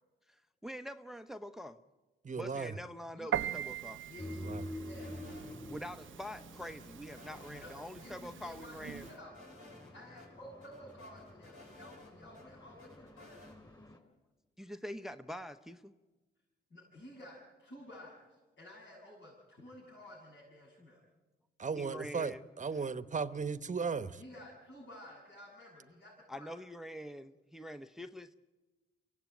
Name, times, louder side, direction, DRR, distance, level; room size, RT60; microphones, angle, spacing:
voice 1, 0.3-1.8 2.3-4.0 5.7-9.0 14.6-15.9 21.8-22.4 22.7-22.9 26.3-28.3, equal, ahead, 9 dB, 0.8 m, -45 dB
voice 2, 2.2-2.7 4.4-4.6 21.6-24.2, right 5 dB, 35° right, 14 dB, 1.1 m, -36 dB
Piano, 3.3-9.2, right 10 dB, 70° right, 0.6 m, -42 dB
voice 3, 4.1-5.2 7.5-9.3 9.9-13.4 16.7-21.0 24.2-26.5, left 1 dB, 65° left, -6 dB, 7.2 m, -53 dB
sound 1, 4.2-14.0, left 1 dB, 20° left, 4.4 m, -49 dB
sound 2, 5.0-5.9 6.2-7.7 8.0-8.1 8.4-9.9 10.2-10.3 10.6-12.4 12.8-13.6, left 2 dB, 85° left, 4.9 m, -56 dB
24.0 x 16.0 x 9.1 m, 1.2 s
supercardioid pair, 55°, 21 cm